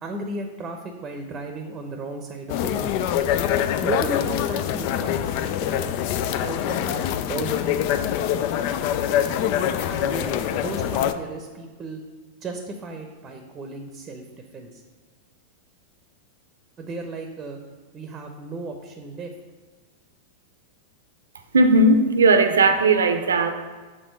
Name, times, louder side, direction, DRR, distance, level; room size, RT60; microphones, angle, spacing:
voice 1, 0.0-2.9 3.8-6.0 6.4-8.0 9.1-9.2 9.9-12.0 12.4-14.2 14.5-14.8 16.8-17.6 17.9-19.3, right 2 dB, 25° right, 4 dB, 0.7 m, -34 dB
sound 1, 2.5-11.1, left 10 dB, 50° left, 0.4 m, -24 dB
voice 2, 21.5-23.5, right 2 dB, 80° right, 8 dB, 0.6 m, -17 dB
6.1 x 3.8 x 5.2 m, 1.4 s
hypercardioid pair, 95°, 0 cm